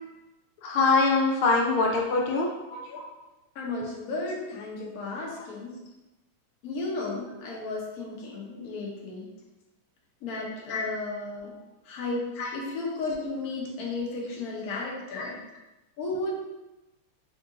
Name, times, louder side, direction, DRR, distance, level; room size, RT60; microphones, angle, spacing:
voice 1, 0.6-2.5 10.7-10.8 12.4-12.5 15.1-15.3, left 3 dB, 75° left, 0 dB, 1.4 m, -23 dB
voice 2, 2.7-3.0 3.5-5.7 6.6-9.3 10.2-11.5 11.8-15.4 16.0-16.3, left 3 dB, 60° left, -3 dB, 1.0 m, -34 dB
3.6 x 2.6 x 3.7 m, 1.0 s
omnidirectional pair, 2.4 m